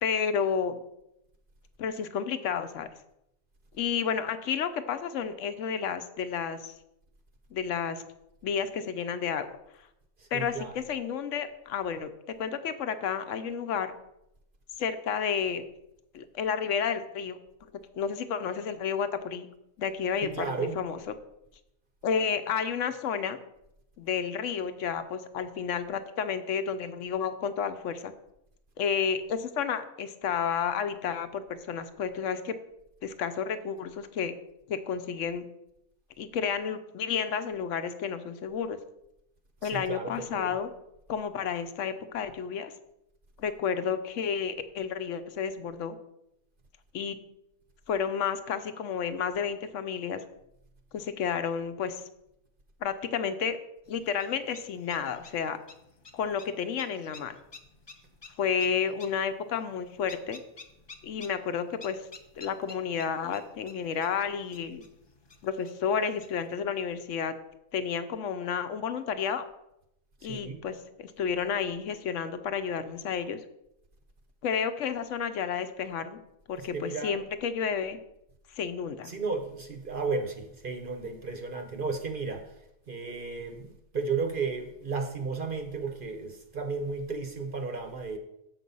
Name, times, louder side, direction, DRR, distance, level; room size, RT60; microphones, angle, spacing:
voice 1, 0.0-0.8 1.8-2.9 3.7-6.7 7.5-8.0 8.4-9.5 10.3-13.9 14.8-15.6 16.1-17.4 18.0-19.5 19.8-21.0 22.0-23.4 24.0-28.1 28.8-32.6 33.0-34.3 34.7-35.5 36.2-38.8 39.6-40.7 41.1-42.7 43.4-46.0 46.9-47.2 47.9-50.2 50.9-52.0 52.8-53.6 53.9-55.6 56.1-57.4 58.4-60.4 61.0-62.1 62.4-64.9 65.4-67.3 67.7-69.4 70.2-73.4 74.4-76.2 76.5-78.0 78.5-79.1, left 7 dB, 65° left, 11 dB, 1.0 m, -31 dB
voice 2, 10.2-10.8 20.2-20.8 39.6-40.5 70.3-70.6 76.6-77.2 79.1-82.5 82.9-88.2, right 4 dB, 50° right, 6 dB, 0.7 m, -34 dB
sound 1, 53.9-66.5, left 3 dB, 45° left, 0.3 m, -52 dB
7.5 x 5.8 x 5.4 m, 0.85 s
omnidirectional pair, 1.5 m